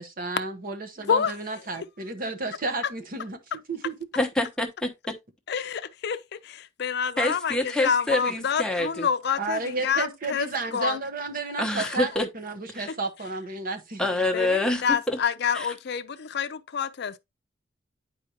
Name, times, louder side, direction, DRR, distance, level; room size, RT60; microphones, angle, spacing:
voice 1, 0.0-3.4 3.7-3.9 9.4-14.1, right 3 dB, 50° right, 1.0 m, -32 dB
voice 2, 4.1-5.2 7.2-9.1 11.6-12.3 12.7-12.9 14.0-15.2 15.5-15.7, left 2 dB, 5° left, 1.0 m, -26 dB
voice 3, 5.5-11.0 11.8-12.0 14.3-17.2, left 6 dB, 60° left, 0.5 m, -28 dB
9.5 x 4.9 x 2.8 m
head